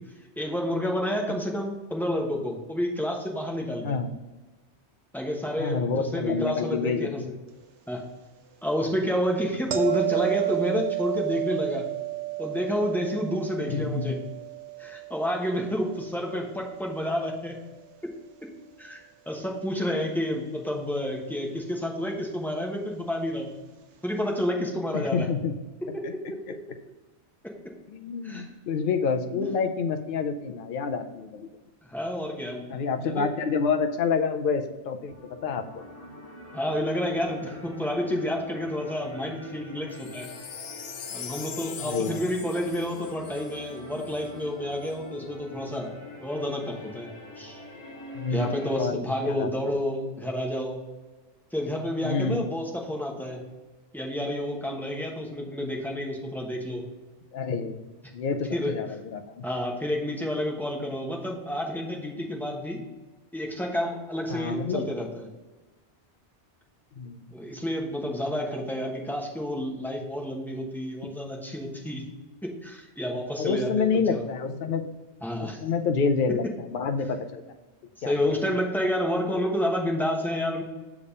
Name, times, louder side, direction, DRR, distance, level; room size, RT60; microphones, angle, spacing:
voice 1, 0.4-3.9 5.1-7.3 7.9-8.0 8.6-11.8 12.4-14.2 14.8-17.6 18.8-19.0 19.3-23.5 24.0-25.3 25.9-26.4 27.4-27.7 28.2-28.5 29.3-29.5 31.9-33.3 36.5-40.3 41.1-45.9 46.2-47.1 47.4-47.6 48.3-50.8 51.5-53.4 53.9-56.8 58.5-58.8 59.4-62.8 63.3-65.3 67.3-72.0 72.4-74.2 75.2-75.6 78.0-80.6, equal, ahead, -1 dB, 0.9 m, -30 dB
voice 2, 3.8-4.1 5.6-7.3 13.7-14.2 19.9-20.0 24.9-25.5 26.0-26.1 27.9-31.5 32.7-35.8 41.8-42.2 48.1-49.7 52.0-52.5 57.3-57.9 58.1-59.4 64.3-64.9 67.0-67.3 73.4-74.8 75.6-77.4 78.0-78.1, left 5 dB, 55° left, 6 dB, 0.7 m, -28 dB
sound 1, 9.7-16.7 22.0-22.1, right 17 dB, 85° right, 1.0 m, -32 dB
sound 2, 35.1-48.8, left 1 dB, 25° left, 2.2 m, -44 dB
Wind chime, 39.9-44.3 44.8-44.9, left 8 dB, 85° left, 0.9 m, -41 dB
6.7 x 3.6 x 5.3 m, 1.2 s
omnidirectional pair, 1.1 m